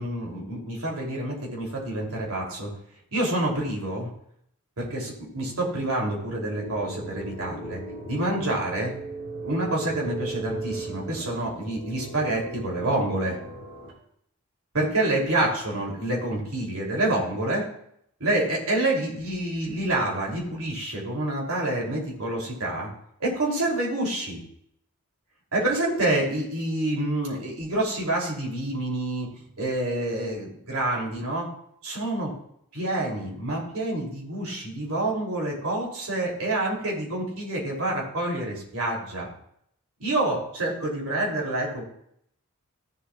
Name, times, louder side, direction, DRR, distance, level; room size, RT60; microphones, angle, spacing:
voice 1, 0.0-2.7 3.1-4.1 4.8-7.8 8.1-8.9 9.4-13.4 14.7-17.7 18.2-22.9 23.2-24.4 25.5-29.3 29.6-31.5 31.8-32.3 32.7-39.3 40.0-41.8, right 1 dB, 90° right, -2 dB, 3.1 m, -27 dB
sound 1, 6.5-13.9, right 2 dB, 55° right, 3.4 m, -37 dB
15.5 x 7.4 x 2.4 m, 0.71 s
head